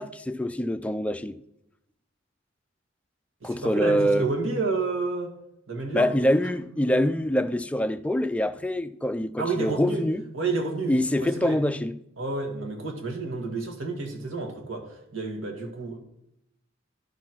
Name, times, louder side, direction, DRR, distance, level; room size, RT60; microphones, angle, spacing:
voice 1, 0.0-1.4 3.4-4.3 5.9-10.2 10.9-11.9, equal, 5° left, 0.3 m, -25 dB
voice 2, 3.4-5.3 5.7-6.1 9.4-10.1 10.3-11.6 12.2-16.0, right 3 dB, 80° right, 1.8 m, -30 dB
11.0 x 4.2 x 6.0 m
head